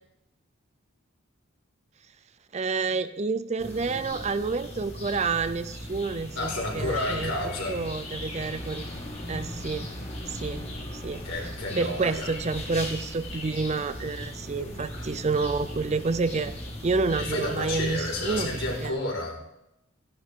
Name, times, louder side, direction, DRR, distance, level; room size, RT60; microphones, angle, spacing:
voice 1, 2.5-7.3 7.7-8.8 9.3-9.9 10.3-10.7 11.0-11.3 11.8-16.5 16.8-18.5 18.8-18.9, right 4 dB, 35° right, 13 dB, 0.5 m, -29 dB
sound 1, 3.6-18.9, left 1 dB, 30° left, 2.3 m, -37 dB
voice 2, 6.3-7.8 11.2-12.3 14.5-15.2 17.2-19.4, left 1 dB, 70° left, -1 dB, 4.4 m, -31 dB
15.0 x 11.0 x 3.7 m, 0.84 s
head